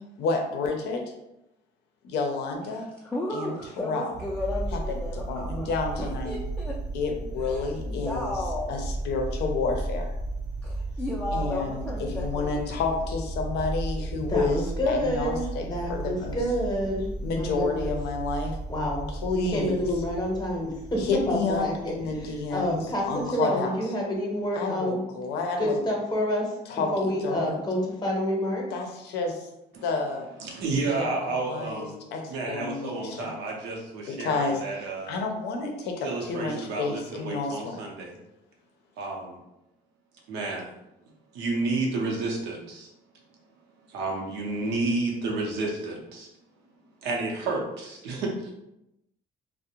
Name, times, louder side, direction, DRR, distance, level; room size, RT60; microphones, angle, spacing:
voice 1, 0.2-1.0 2.0-2.9 3.3-4.1 4.7-6.3 6.9-8.4 8.7-10.1 11.3-16.4 17.2-18.6 19.1-19.8 21.0-23.7 24.6-25.8 26.7-27.6 28.7-29.5 29.8-30.2 31.0-33.3 34.1-34.6 35.1-37.9, left 4 dB, 80° left, 3 dB, 0.5 m, -30 dB
voice 2, 2.7-6.8 7.4-8.8 10.6-12.5, left 2 dB, 10° left, -4 dB, 0.3 m, -34 dB
sound 1, 4.1-23.3, right 2 dB, 45° right, 0.6 m, -35 dB
voice 3, 14.3-17.9 18.7-19.0 19.3-20.7 21.1-23.0 23.3-25.0 25.6-28.6, equal, 25° left, -2 dB, 0.7 m, -28 dB
voice 4, 30.4-32.0 32.3-35.2 36.0-38.2 39.0-39.4 40.3-40.7 41.3-42.9 43.9-46.3 47.0-48.5, right 3 dB, 90° right, -1 dB, 0.6 m, -31 dB
2.4 x 2.0 x 2.9 m, 0.87 s
cardioid pair, 110°, 17 cm